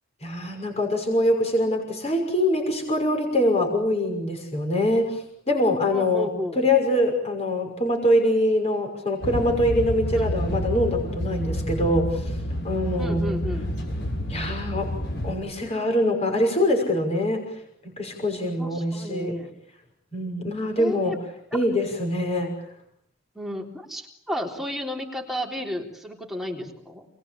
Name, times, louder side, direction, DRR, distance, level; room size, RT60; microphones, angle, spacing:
voice 1, 0.2-6.3 6.6-12.3 12.6-13.3 14.3-14.9 15.2-17.4 17.8-19.4 20.1-21.2 21.5-22.5, left 1 dB, 35° left, 3 dB, 5.9 m, -24 dB
voice 2, 5.9-6.6 10.1-10.3 13.0-13.7 18.6-19.5 20.8-21.2 23.4-27.1, equal, ahead, 0 dB, 3.7 m, -32 dB
sound 1, 9.2-15.3, equal, 60° left, 6.6 m, -29 dB
28.5 x 21.5 x 8.7 m, 0.73 s
head